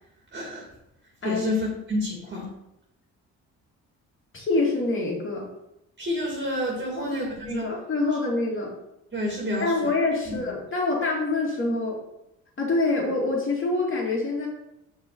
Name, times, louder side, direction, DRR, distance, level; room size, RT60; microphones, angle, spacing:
voice 1, 0.3-0.7 1.2-2.5 6.0-7.7 9.1-9.9 10.3-10.4, left 1 dB, 35° right, -2 dB, 2.2 m, -29 dB
voice 2, 4.3-5.5 6.9-7.2 7.4-8.7 9.6-12.0 12.6-14.5, left 3 dB, 40° left, -2 dB, 2.8 m, -26 dB
6.4 x 5.5 x 4.8 m, 0.85 s
cardioid pair, 85°, 32 cm